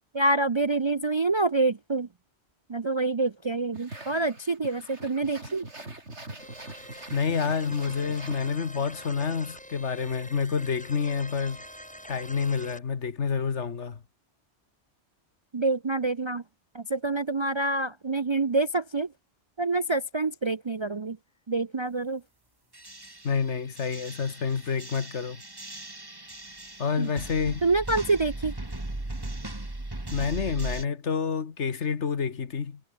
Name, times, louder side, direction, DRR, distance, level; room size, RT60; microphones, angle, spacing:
voice 1, 0.1-2.1 2.7-5.6 15.5-16.4 16.7-19.1 19.6-21.2 21.5-22.2 27.0-27.1 27.6-28.5, right 3 dB, 35° right, 0.5 m, -26 dB
sound 1, 3.7-9.0, right 2 dB, 70° right, 5.3 m, -43 dB
sound 2, 6.4-12.8, equal, 5° left, 5.1 m, -45 dB
voice 2, 7.1-11.6 12.1-14.0 23.2-25.4 26.8-27.7 30.1-32.8, left 6 dB, 75° left, 1.8 m, -28 dB
sound 3, 22.7-30.8, right 2 dB, 20° right, 2.1 m, -38 dB
omnidirectional pair, 1.2 m